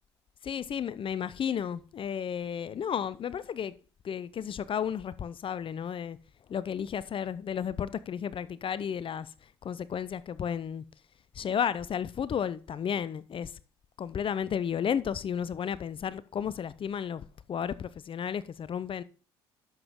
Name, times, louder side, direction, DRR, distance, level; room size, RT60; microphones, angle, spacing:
voice 1, 0.4-3.8 4.0-6.2 6.5-9.3 9.6-10.8 11.4-13.5 14.0-19.0, left 8 dB, 40° left, 0.6 m, -33 dB
10.5 x 7.1 x 3.7 m
hypercardioid pair, 55°, 14 cm